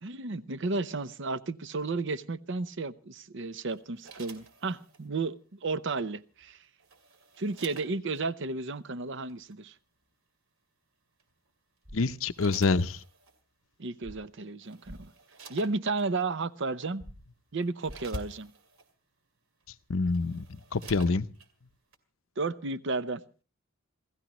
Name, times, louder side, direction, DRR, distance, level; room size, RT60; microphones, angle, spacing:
voice 1, 0.0-6.6 7.4-9.7 13.8-15.1 15.5-17.0 17.5-18.5 22.4-23.2, right 3 dB, 60° right, 0.7 m, -33 dB
sound 1, 3.7-5.1 6.4-8.3 9.3-9.5 11.2-11.5 12.0-13.4 14.2-14.3 14.6-16.1 16.8-17.0 17.4-18.9 19.6-19.7 20.0-21.5 21.9-22.0, right 5 dB, 80° right, 2.5 m, -52 dB
sound 2, 11.8-12.0 14.0-14.2 14.8-15.0 17.0-17.2 17.8-18.0 20.0-20.2 20.8-21.0, equal, 25° right, 1.1 m, -45 dB
voice 2, 11.9-13.0 19.9-21.3, left 3 dB, 70° left, 0.7 m, -27 dB
28.0 x 15.5 x 3.0 m
head